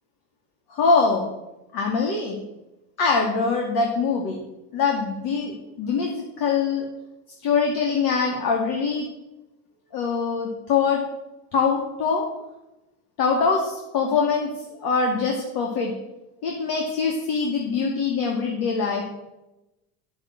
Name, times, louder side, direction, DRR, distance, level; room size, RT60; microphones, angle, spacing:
voice 1, 0.7-1.3 1.7-2.4 3.0-4.4 4.7-6.9 7.4-9.1 9.9-11.0 11.5-12.2 13.2-14.5 14.8-15.9 16.4-19.0, left 5 dB, 50° left, 0 dB, 2.6 m, -23 dB
11.0 x 7.0 x 7.8 m, 0.98 s
supercardioid pair, 120°, 47 cm